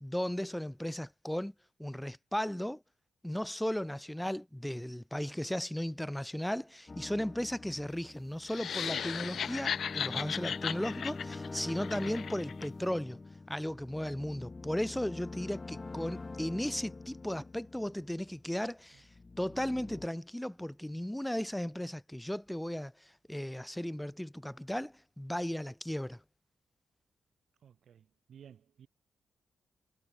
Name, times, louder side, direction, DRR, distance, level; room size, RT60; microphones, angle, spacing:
voice 1, 0.0-1.5 1.8-2.8 3.2-13.2 13.5-19.1 19.4-26.2, equal, 5° left, 0.6 m, -36 dB
sound 1, 6.9-18.5 19.0-20.1, left 3 dB, 20° left, 2.0 m, -45 dB
sound 2, 8.4-12.7, left 7 dB, 55° left, 0.5 m, -36 dB
voice 2, 27.6-28.9, right 8 dB, 65° right, 3.2 m, -56 dB
wide cardioid pair, 155°, 0 cm